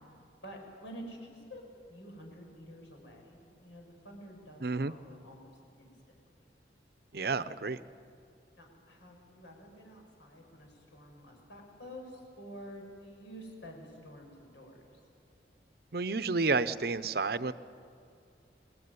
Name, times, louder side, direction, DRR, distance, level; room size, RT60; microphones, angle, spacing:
voice 1, 0.4-1.6 1.9-6.1 8.6-14.8, equal, 85° left, 1 dB, 6.7 m, -49 dB
voice 2, 4.6-4.9 7.1-7.8 15.9-17.5, right 4 dB, 55° right, 14 dB, 0.7 m, -30 dB
28.0 x 20.0 x 9.7 m, 2.4 s
head